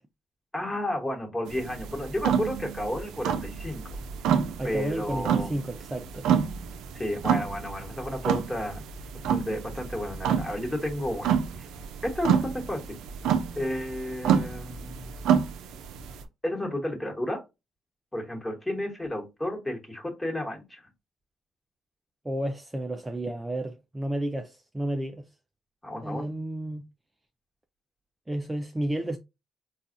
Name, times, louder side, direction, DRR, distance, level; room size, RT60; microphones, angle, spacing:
voice 1, 0.5-4.0 4.6-5.5 6.9-8.8 9.3-11.7 12.0-13.0 13.6-15.1 16.4-17.4 18.1-20.8 25.8-26.2, left 1 dB, 15° left, 1.3 m, -32 dB
sound 1, 1.5-16.2, right 8 dB, 90° right, 0.4 m, -28 dB
voice 2, 4.6-6.3 22.2-25.3 26.0-26.8 28.3-29.2, right 1 dB, 15° right, 0.4 m, -32 dB
4.0 x 2.3 x 2.5 m
cardioid pair, 90°, 0 cm